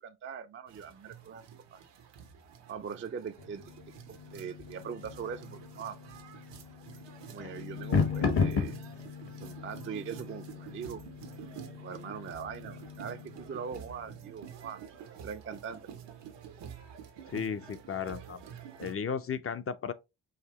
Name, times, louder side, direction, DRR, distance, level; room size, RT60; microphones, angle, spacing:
voice 1, 0.0-1.4 1.7-1.8 2.7-3.6 4.1-6.0 7.3-8.8 9.4-11.0 11.7-14.8 15.1-15.9, right 7 dB, 30° right, 0.4 m, -41 dB
sound 1, 0.7-18.9, right 8 dB, 85° right, 0.9 m, -49 dB
sound 2, 3.4-14.2, left 5 dB, 65° left, 1.1 m, -36 dB
voice 2, 17.3-18.5 18.8-19.9, left 7 dB, 35° left, 0.4 m, -35 dB
4.9 x 2.6 x 3.0 m
cardioid pair, 75°, 41 cm